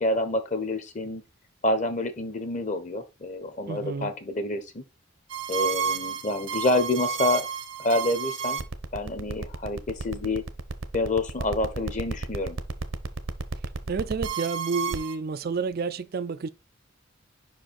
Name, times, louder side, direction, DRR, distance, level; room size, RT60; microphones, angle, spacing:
voice 1, 0.0-1.2 1.6-4.8 5.5-7.5 7.8-8.6 8.9-10.4 10.9-12.6, left 2 dB, 35° left, 1.0 m, -28 dB
voice 2, 3.7-4.1 13.9-16.5, right 5 dB, 45° right, 0.4 m, -30 dB
sound 1, 5.3-15.1, right 5 dB, 65° right, 0.8 m, -31 dB
5.5 x 5.0 x 4.2 m
head